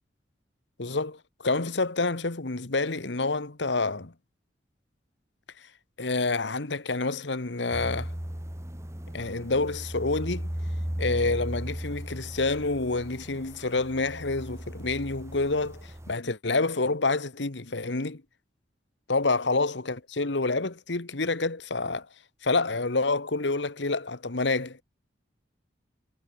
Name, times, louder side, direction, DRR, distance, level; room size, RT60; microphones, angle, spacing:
voice 1, 0.8-4.1 6.0-8.1 9.1-10.5 11.0-18.2 19.1-22.1 22.4-24.8, left 3 dB, 75° left, 1.5 m, -28 dB
sound 1, 7.7-16.1, equal, 15° right, 1.6 m, -36 dB
head